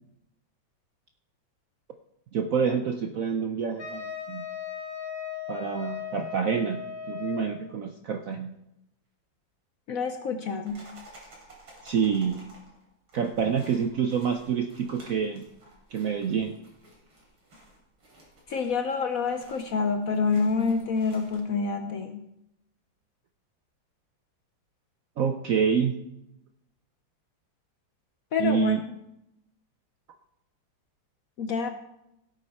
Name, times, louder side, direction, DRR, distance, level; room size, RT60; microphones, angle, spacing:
voice 1, 2.3-4.4 5.5-6.8 7.1-8.5 11.8-12.4 13.1-15.5 15.9-16.6 25.2-25.9 28.4-28.8, right 7 dB, 65° right, 6 dB, 0.8 m, -27 dB
Wind instrument woodwind instrument, 3.8-7.6, left 8 dB, 80° left, 3.1 m, -37 dB
voice 2, 9.9-10.9 18.5-22.3 28.3-28.8 31.4-31.7, left 5 dB, 60° left, 7 dB, 0.9 m, -27 dB
sound 1, 10.6-21.6, right 1 dB, 90° right, 4.1 m, -53 dB
16.5 x 8.0 x 4.3 m, 0.84 s
omnidirectional pair, 2.1 m